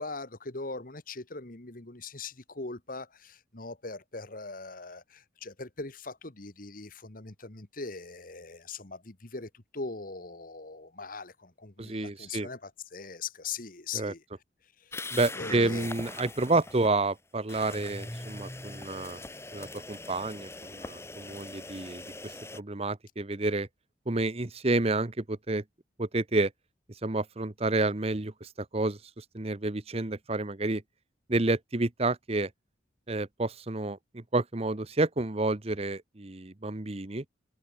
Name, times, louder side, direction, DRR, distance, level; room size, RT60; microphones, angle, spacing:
voice 1, 0.0-14.2 14.8-15.0 15.3-15.9, left 4 dB, 45° left, 1.7 m, -41 dB
voice 2, 11.8-12.5 13.9-14.1 15.1-19.2 19.5-23.7 24.1-25.6 26.0-26.5 27.0-30.8 31.3-32.5 33.1-37.2, right 2 dB, 30° right, 1.0 m, -30 dB
sound 1, 14.9-16.9 17.5-22.6, left 2 dB, 15° left, 2.1 m, -41 dB
head